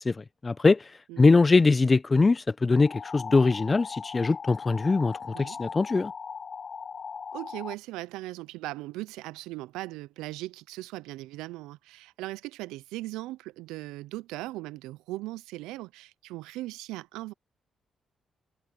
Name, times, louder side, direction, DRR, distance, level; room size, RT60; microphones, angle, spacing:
voice 1, 0.0-0.8 1.2-6.1, left 3 dB, 35° left, 0.7 m, -22 dB
sound 1, 2.7-7.7, left 6 dB, 50° left, 1.5 m, -39 dB
voice 2, 7.3-17.3, right 18 dB, 85° right, 0.4 m, -39 dB
supercardioid pair, 55°, 0 cm